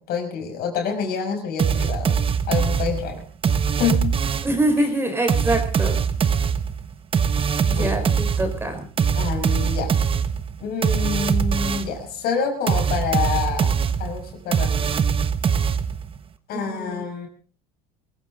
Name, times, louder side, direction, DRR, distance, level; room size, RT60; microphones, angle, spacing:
voice 1, 0.0-2.2 2.5-3.2 3.8-4.2 4.8-4.9 7.7-8.2 9.1-9.9 10.6-13.7 14.0-15.0 16.5-17.3, left 6 dB, 60° left, 4 dB, 6.0 m, -27 dB
sound 1, 1.6-4.6 5.3-12.0 12.7-16.2, right 7 dB, 30° right, 1.3 m, -22 dB
voice 2, 4.4-6.0 7.7-8.8 16.5-17.0, right 1 dB, 15° right, 5 dB, 4.5 m, -24 dB
23.0 x 15.0 x 3.9 m, 0.39 s
supercardioid pair, 110°, 18 cm